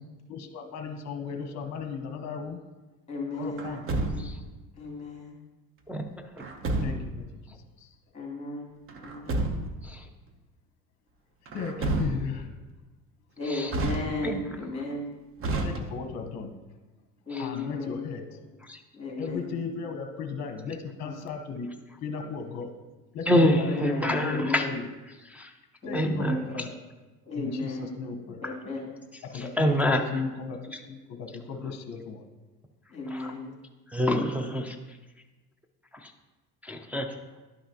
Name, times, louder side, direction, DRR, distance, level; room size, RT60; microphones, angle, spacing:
voice 1, 0.3-2.6 3.3-3.8 6.8-7.2 7.8-7.9 11.5-12.5 15.6-16.5 17.4-18.3 19.2-21.7 22.0-22.7 23.1-24.8 25.8-26.7 27.3-28.4 29.2-32.2, left 5 dB, 45° left, 6 dB, 0.9 m, -35 dB
voice 2, 3.1-3.8 4.1-4.3 4.8-5.3 8.1-8.7 9.0-9.5 13.4-15.1 17.3-18.0 19.0-19.4 21.0-21.1 23.4-24.7 25.8-26.6 27.3-27.9 28.4-28.9 29.7-29.8 32.9-33.5, left 2 dB, 20° left, -3 dB, 2.5 m, -35 dB
Truck, 3.6-4.5 6.4-7.2 8.9-9.9 11.5-12.5 13.7-14.5 15.4-16.3, right 2 dB, 35° right, 0.9 m, -31 dB
voice 3, 14.2-14.6 17.3-17.5 18.7-18.8 23.3-24.7 25.3-25.5 25.9-26.4 28.4-28.5 29.3-30.0 33.1-33.3 33.9-34.8 36.0-36.1 36.6-37.1, equal, 5° right, 1 dB, 0.4 m, -26 dB
11.0 x 5.8 x 2.9 m, 1.2 s
cardioid pair, 125°, 37 cm